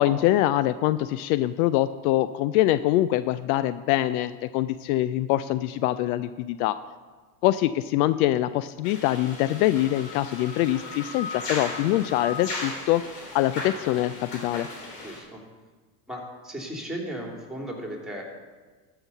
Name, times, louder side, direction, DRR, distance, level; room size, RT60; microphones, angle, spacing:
voice 1, 0.0-6.8 7.4-13.0 13.3-14.7, left 14 dB, 65° left, 14 dB, 0.5 m, -24 dB
sound 1, 8.8-15.2, left 3 dB, 85° left, 3.3 m, -36 dB
voice 2, 15.0-15.4 16.1-18.2, right 1 dB, ahead, 0 dB, 2.9 m, -36 dB
13.0 x 5.8 x 5.4 m, 1.4 s
hypercardioid pair, 85°, 47 cm